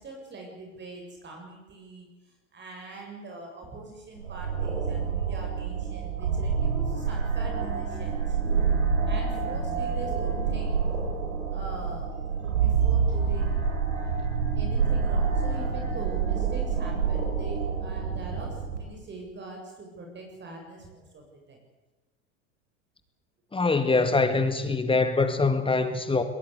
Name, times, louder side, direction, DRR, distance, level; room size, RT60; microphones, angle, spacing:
voice 1, 0.0-2.1 2.5-8.4 9.1-10.9 11.4-13.6 14.0-14.2 14.6-21.6, right 2 dB, 30° right, 7.4 m, -43 dB
sound 1, 4.2-18.8, right 6 dB, 80° right, 6.0 m, -27 dB
voice 2, 23.5-26.2, left 3 dB, 15° left, 2.3 m, -24 dB
21.5 x 21.0 x 8.4 m
hypercardioid pair, 85°, 37 cm